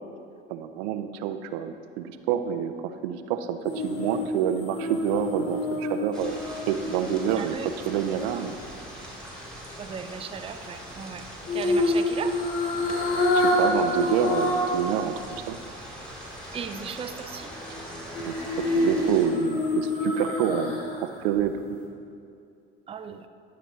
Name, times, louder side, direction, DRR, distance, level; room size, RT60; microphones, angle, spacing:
voice 1, 0.5-6.4 6.7-8.6 13.3-15.6 18.2-18.4 18.7-21.5, right 9 dB, 70° right, 9 dB, 0.5 m, -28 dB
sound 1, 3.7-7.9 11.5-14.8 15.2-15.3 18.1-21.0 21.4-21.5, left 1 dB, 45° left, 1.6 m, -27 dB
sound 2, 6.1-19.3, equal, 5° left, 2.0 m, -41 dB
voice 2, 7.4-7.7 8.3-8.4 9.8-11.2 11.5-12.4 16.5-17.5 22.9-23.2, right 6 dB, 20° right, 9 dB, 0.4 m, -36 dB
11.5 x 6.0 x 3.1 m, 2.4 s
hypercardioid pair, 65°, 31 cm